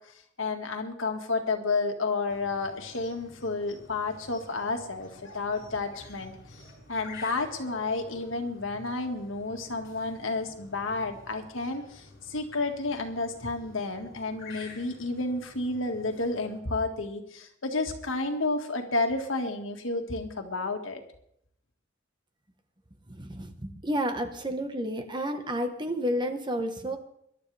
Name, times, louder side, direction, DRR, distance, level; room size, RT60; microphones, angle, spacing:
voice 1, 0.1-6.3 6.9-21.0, left 3 dB, 85° left, 4 dB, 1.9 m, -31 dB
sound 1, 2.3-16.6, left 2 dB, 65° left, 5.1 m, -50 dB
voice 2, 23.1-27.0, equal, 25° right, 6 dB, 1.3 m, -31 dB
23.0 x 11.5 x 3.5 m, 0.72 s
head